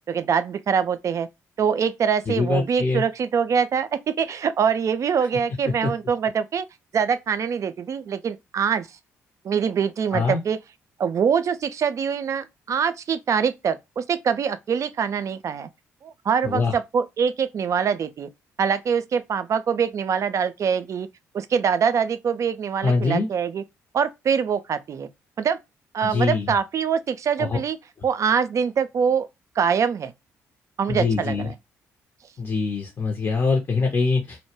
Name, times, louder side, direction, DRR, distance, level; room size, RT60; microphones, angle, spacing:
voice 1, 0.1-1.3 1.6-6.7 6.9-8.9 9.4-10.6 11.0-15.7 16.0-18.3 18.6-21.1 21.3-23.6 23.9-25.1 25.4-25.6 25.9-27.8 28.0-29.3 29.6-30.1 30.8-31.5, right 7 dB, 40° right, 0.3 m, -24 dB
voice 2, 2.3-3.0 5.8-5.9 10.1-10.4 16.4-16.8 22.8-23.3 26.0-26.5 27.4-27.6 30.9-31.5 32.4-34.4, left 4 dB, 35° left, 0.6 m, -23 dB
2.1 x 2.1 x 3.0 m
figure-of-eight pair, 40°, 8 cm